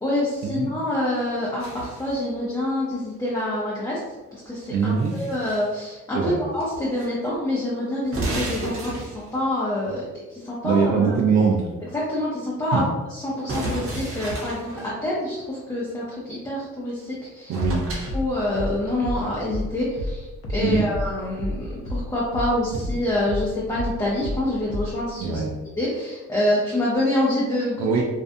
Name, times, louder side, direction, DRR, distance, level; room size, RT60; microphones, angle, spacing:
voice 1, 0.0-4.0 4.3-10.0 10.3-11.1 11.9-12.8 13.1-17.5 18.1-25.4 25.8-27.8, left 1 dB, 10° left, -7 dB, 0.6 m, -26 dB
sound 1, 1.6-2.2 4.6-5.7 6.6-7.1 7.3-7.4 8.0-9.4 13.5-14.9 17.0-17.1 17.5-18.2, right 2 dB, 50° right, 0.9 m, -32 dB
voice 2, 4.7-5.2 6.1-6.4 10.6-11.7 12.7-12.8 17.5-17.9 20.6-20.8 25.2-25.5 27.8-28.0, right 5 dB, 65° right, -1 dB, 0.4 m, -22 dB
sound 2, 17.6-22.5 22.8-25.0, left 1 dB, 50° left, 0.6 m, -30 dB
2.5 x 2.2 x 2.6 m, 1.2 s
cardioid pair, 90°, 30 cm